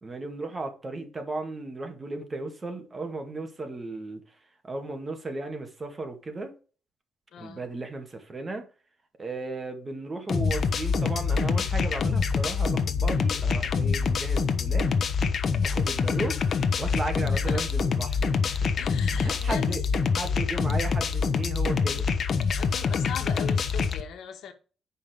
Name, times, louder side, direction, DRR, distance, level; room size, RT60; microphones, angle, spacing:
voice 1, 0.0-6.5 7.4-8.7 9.2-15.2 15.6-16.4 16.8-18.7 19.1-19.8 20.1-22.1, right 2 dB, 25° right, 1.9 m, -35 dB
voice 2, 7.3-7.6 17.3-17.6 18.8-19.8 22.6-24.5, left 7 dB, 80° left, 1.4 m, -39 dB
sound 1, 10.3-24.0, left 5 dB, 55° left, 1.0 m, -25 dB
8.7 x 5.5 x 5.0 m
cardioid pair, 110°, 0 cm